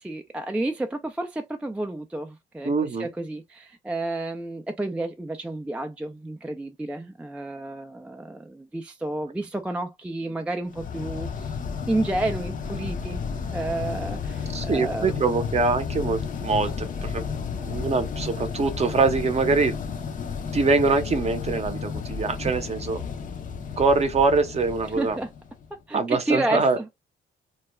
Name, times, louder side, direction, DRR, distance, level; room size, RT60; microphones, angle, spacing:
voice 1, 0.0-2.7 3.0-11.6 11.9-13.2 13.5-15.2 25.0-25.3 25.9-27.1, right 2 dB, 5° right, 0.3 m, -31 dB
voice 2, 2.6-3.1 14.5-20.0 20.5-23.0 23.8-25.2 25.9-26.8, right 4 dB, 30° right, 0.7 m, -24 dB
sound 1, 10.7-25.7, left 6 dB, 40° left, 0.6 m, -32 dB
2.3 x 2.1 x 2.9 m
cardioid pair, 90°, 20 cm